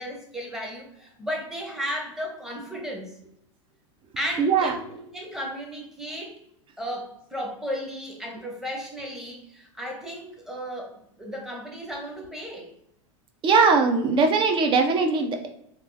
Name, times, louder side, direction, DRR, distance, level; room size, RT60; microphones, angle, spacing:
voice 1, 0.0-3.2 4.2-6.4 6.8-12.7, equal, 5° right, 0 dB, 0.9 m, -34 dB
voice 2, 4.4-4.7 13.4-15.5, right 4 dB, 30° right, 4 dB, 0.6 m, -20 dB
3.4 x 2.4 x 2.7 m, 0.74 s
hypercardioid pair, 100°, 16 cm